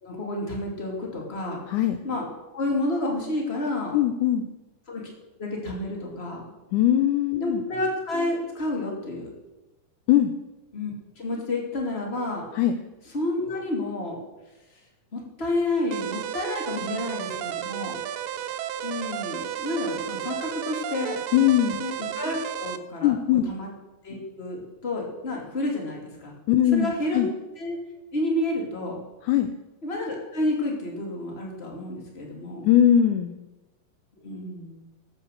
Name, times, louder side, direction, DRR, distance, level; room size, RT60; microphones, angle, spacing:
voice 1, 0.0-1.6 2.0-2.2 2.5-4.0 4.9-5.1 5.4-6.4 7.4-9.3 10.7-12.4 13.1-14.1 15.1-18.0 18.8-21.2 21.8-23.1 23.5-23.7 24.0-26.3 26.7-27.2 27.6-27.8 28.1-29.0 29.8-32.7 34.2-34.9, left 1 dB, 20° left, 0 dB, 2.4 m, -30 dB
voice 2, 3.9-4.5 6.7-7.6 10.1-10.3 12.6-12.7 21.3-21.8 23.0-23.4 26.5-27.3 29.2-29.5 32.6-33.4, left 11 dB, 80° left, 8 dB, 1.9 m, -20 dB
sound 1, 15.9-22.8, right 11 dB, 80° right, 2.3 m, -33 dB
13.5 x 7.8 x 6.6 m, 1.0 s
omnidirectional pair, 3.9 m